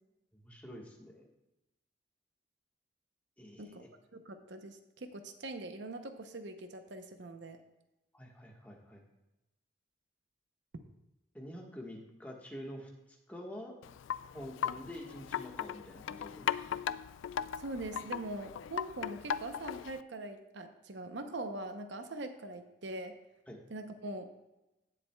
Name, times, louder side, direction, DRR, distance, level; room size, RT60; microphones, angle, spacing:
voice 1, 0.4-1.3 3.4-3.9 8.1-9.0 11.3-13.8 14.3-16.8 23.5-23.6, equal, 10° left, -1 dB, 1.4 m, -47 dB
voice 2, 4.1-7.6 17.6-23.1 23.7-24.3, right 2 dB, 65° right, 7 dB, 0.7 m, -42 dB
Wind chime, 13.8-20.0, left 8 dB, 90° left, 0.3 m, -38 dB
16.5 x 7.5 x 2.3 m, 0.97 s
head